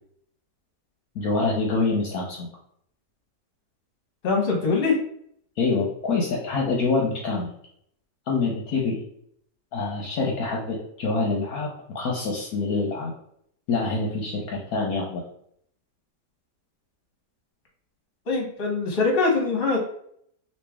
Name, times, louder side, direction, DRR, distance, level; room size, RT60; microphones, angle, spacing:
voice 1, 1.1-2.5 5.6-7.5 8.3-9.0 9.7-11.7 11.9-13.1 13.7-15.2, left 3 dB, 65° left, -2 dB, 1.0 m, -25 dB
voice 2, 4.2-5.0 18.3-19.8, left 4 dB, 40° left, 0 dB, 1.0 m, -23 dB
3.2 x 2.8 x 3.3 m, 0.68 s
omnidirectional pair, 1.9 m